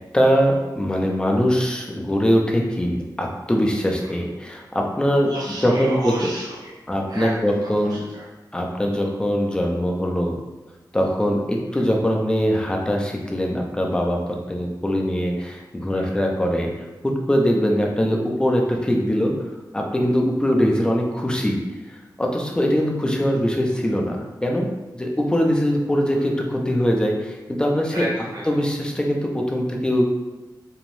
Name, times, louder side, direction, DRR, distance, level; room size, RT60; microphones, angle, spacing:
voice 1, 0.1-5.3 5.6-6.1 6.9-8.0 8.5-10.3 10.9-16.7 17.0-19.3 19.7-21.6 21.8-24.7 24.9-28.1 28.5-30.0, equal, 10° left, 1 dB, 0.4 m, -22 dB
voice 2, 5.2-6.7 7.1-7.3 7.9-8.2 11.7-11.8 15.9-16.1 26.1-26.2 27.9-28.4, right 1 dB, 60° right, -6 dB, 0.6 m, -32 dB
2.6 x 2.0 x 3.0 m, 1.1 s
wide cardioid pair, 120°, 8 cm